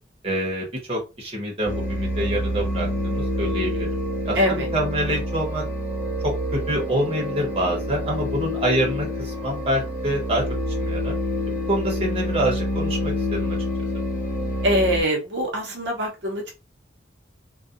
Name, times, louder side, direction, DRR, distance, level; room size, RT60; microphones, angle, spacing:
voice 1, 0.2-3.9 4.2-5.6 6.2-10.4 10.8-11.1 11.7-13.6, right 1 dB, 30° right, -1 dB, 0.9 m, -26 dB
sound 1, 1.6-15.0, equal, 45° left, 1.3 m, -27 dB
voice 2, 4.3-4.7 14.6-16.5, equal, 65° right, 0 dB, 0.7 m, -23 dB
2.6 x 2.2 x 2.4 m, 0.28 s
head